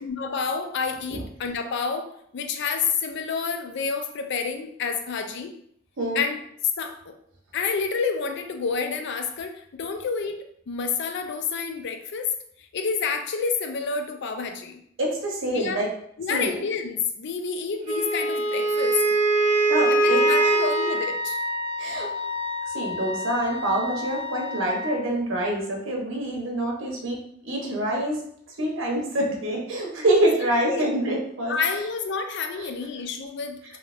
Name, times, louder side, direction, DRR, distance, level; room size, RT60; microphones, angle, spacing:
voice 1, 0.0-5.5 6.1-6.4 6.8-7.1 7.5-12.3 12.7-14.8 15.5-15.9 16.2-19.0 19.9-21.4 30.1-30.2 30.7-30.8 31.5-33.8, left 5 dB, 60° left, 6 dB, 0.4 m, -29 dB
voice 2, 15.0-15.9 16.3-16.5 19.7-20.5 21.8-22.1 22.7-27.2 27.4-28.2 28.6-31.5 32.6-32.7, right 1 dB, 90° right, -1 dB, 0.9 m, -26 dB
Wind instrument woodwind instrument, 17.8-21.1, right 3 dB, 40° right, 1.0 m, -22 dB
Wind instrument woodwind instrument 2, 20.0-24.9, left 4 dB, 70° right, 1.2 m, -31 dB
3.1 x 2.8 x 2.4 m, 0.69 s
head